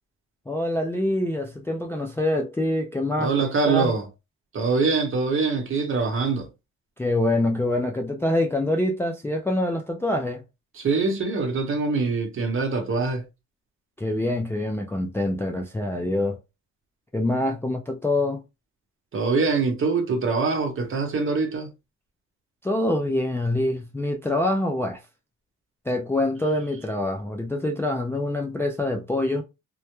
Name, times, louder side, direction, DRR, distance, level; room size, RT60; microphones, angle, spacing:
voice 1, 0.5-3.3 3.7-3.9 7.0-10.4 14.0-16.4 17.1-18.4 22.6-25.0 25.9-29.4, left 1 dB, 10° left, 0.3 m, -25 dB
voice 2, 3.2-4.0 4.5-6.5 10.7-13.3 19.1-21.7, right 4 dB, 45° right, 0.9 m, -24 dB
2.2 x 2.1 x 2.9 m
cardioid pair, 90°, 30 cm